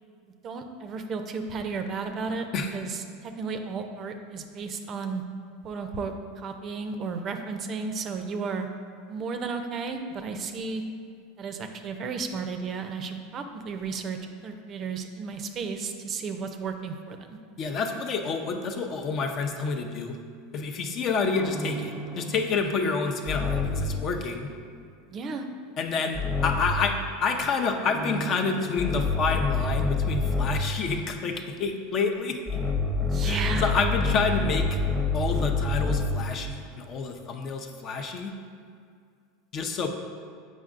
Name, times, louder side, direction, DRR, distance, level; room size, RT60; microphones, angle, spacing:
voice 1, 0.4-2.4 2.7-5.2 5.6-8.7 9.1-10.8 11.4-17.4 25.1-25.5 33.1-33.7, right 4 dB, 35° right, 6 dB, 0.5 m, -33 dB
voice 2, 17.6-20.2 20.5-24.5 25.8-32.6 33.3-34.8 35.1-38.3 39.5-39.9, left 4 dB, 40° left, 4 dB, 0.5 m, -28 dB
sound 1, 21.4-24.1 26.1-27.0 27.8-30.8 32.5-36.3, left 3 dB, ahead, 0.7 m, -28 dB
7.5 x 5.1 x 2.5 m, 2.2 s
supercardioid pair, 115°, 0 cm